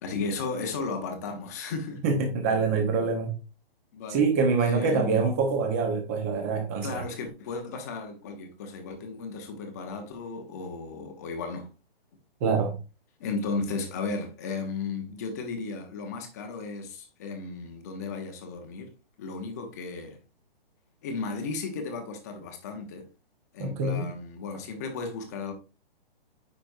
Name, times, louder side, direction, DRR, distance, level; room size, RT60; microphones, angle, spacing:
voice 1, 0.0-2.0 3.9-4.3 4.6-5.3 6.8-11.7 13.2-18.9 19.2-20.2 21.0-23.1 23.5-25.5, left 4 dB, 15° left, 0.8 m, -34 dB
voice 2, 2.0-3.3 4.1-7.0 12.4-12.8 23.6-24.1, right 4 dB, 15° right, 0.9 m, -25 dB
9.4 x 5.2 x 2.6 m
hypercardioid pair, 175°, 30 cm